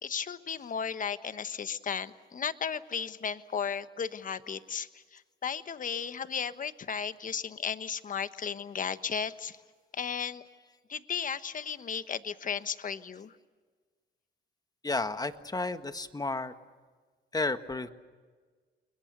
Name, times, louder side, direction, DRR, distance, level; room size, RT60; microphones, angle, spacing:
voice 1, 0.0-9.6 9.9-10.4 10.9-13.3, left 7 dB, 40° left, 12 dB, 1.2 m, -35 dB
voice 2, 14.8-16.5 17.3-17.9, left 3 dB, 20° left, 9 dB, 1.6 m, -32 dB
30.0 x 22.0 x 6.8 m, 1.5 s
cardioid pair, 90°, 20 cm